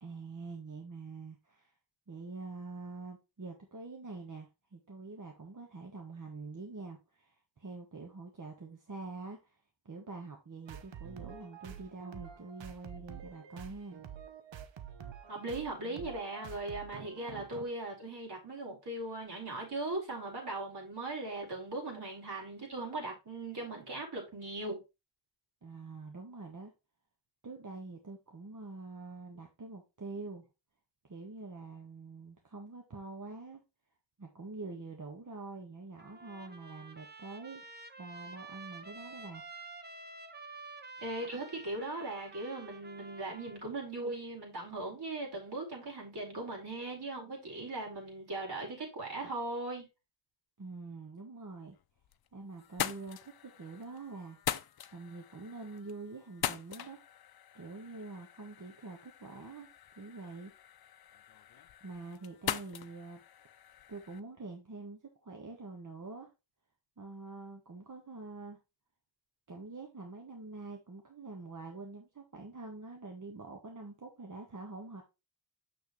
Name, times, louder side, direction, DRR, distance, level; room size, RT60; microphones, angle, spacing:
voice 1, 0.0-1.7 2.1-9.6 9.8-14.1 25.6-26.7 27.4-30.4 31.0-33.6 34.2-37.6 38.0-39.4 50.6-51.8 52.3-54.4 54.9-57.0 57.5-59.7 60.0-60.5 61.8-63.2 63.9-66.3 67.0-68.6 69.5-75.0, right 3 dB, 45° right, 1.5 m, -46 dB
sound 1, 10.7-17.7, right 8 dB, 75° right, 1.0 m, -48 dB
voice 2, 15.3-24.8 41.0-49.9, right 2 dB, 60° right, 4.5 m, -39 dB
Trumpet, 36.0-43.6, right 3 dB, 20° right, 1.0 m, -49 dB
sound 2, 51.7-52.3 52.6-64.2, left 10 dB, 55° left, 0.6 m, -42 dB
6.8 x 6.4 x 3.1 m
cardioid pair, 55°, 45 cm